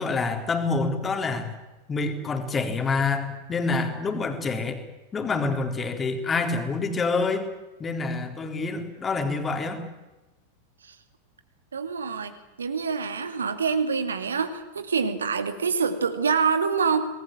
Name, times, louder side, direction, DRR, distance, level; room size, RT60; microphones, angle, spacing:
voice 1, 0.0-1.6 1.9-4.8 5.1-7.5 7.8-9.8, left 4 dB, 20° left, 6 dB, 4.0 m, -27 dB
voice 2, 11.7-17.1, right 5 dB, 70° right, 9 dB, 2.4 m, -26 dB
27.0 x 20.0 x 9.0 m, 1.1 s
figure-of-eight pair, 90°, 0 cm